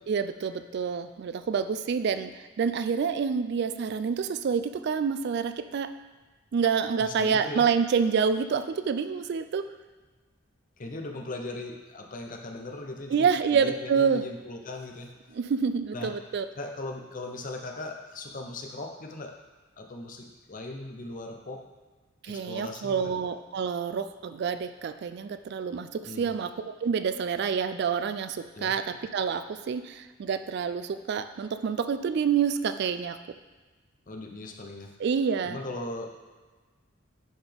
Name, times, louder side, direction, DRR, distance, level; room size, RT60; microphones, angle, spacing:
voice 1, 0.1-2.3 2.6-5.9 6.5-9.6 13.1-14.2 15.3-16.5 22.2-33.2 35.0-35.6, right 6 dB, 55° right, 10 dB, 0.3 m, -27 dB
voice 2, 7.0-7.7 10.8-15.4 15.9-16.1 16.6-19.4 19.8-21.6 22.2-23.1 26.0-26.3 28.5-28.7 34.1-34.9 35.4-36.1, left 2 dB, 40° left, 3 dB, 0.7 m, -39 dB
10.0 x 4.1 x 3.5 m, 1.3 s
head